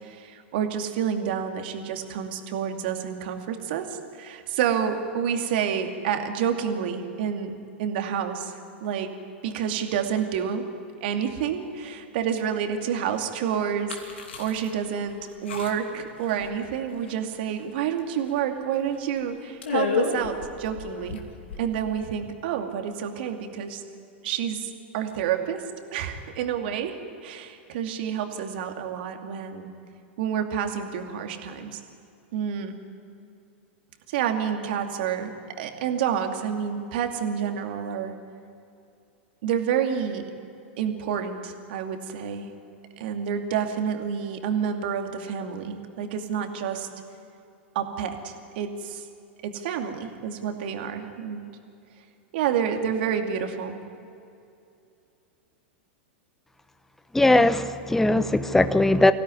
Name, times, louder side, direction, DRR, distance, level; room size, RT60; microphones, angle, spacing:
voice 1, 0.0-9.1 9.4-10.7 11.0-21.2 21.6-23.8 24.2-25.6 25.9-29.7 30.2-31.8 32.3-32.7 34.1-35.3 35.6-38.1 39.4-40.3 40.8-42.5 43.0-46.9 47.7-49.1 49.4-51.5 52.3-53.8, right 8 dB, 60° right, 4 dB, 2.4 m, -29 dB
sound 1, 13.9-14.7 15.1-15.2 15.5-15.9 16.3-16.8 17.0-17.6 18.0-18.1 18.3-18.4 18.9-19.2 19.6-21.9, left 6 dB, 75° left, 2.8 m, -31 dB
voice 2, 57.1-59.1, left 2 dB, 5° left, 12 dB, 0.9 m, -19 dB
24.0 x 17.0 x 9.8 m, 2.6 s
hypercardioid pair, 100°, 6 cm